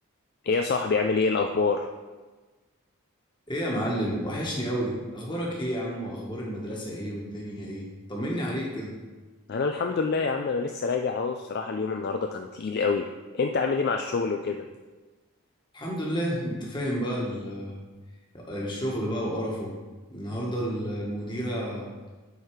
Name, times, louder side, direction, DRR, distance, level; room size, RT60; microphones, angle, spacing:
voice 1, 0.4-1.9 9.5-13.1 13.3-14.6, left 4 dB, 45° left, 4 dB, 0.3 m, -26 dB
voice 2, 3.5-8.9 15.7-17.8 18.3-19.7 20.1-21.9, equal, 20° left, -3 dB, 1.6 m, -31 dB
7.9 x 4.6 x 4.9 m, 1.3 s
head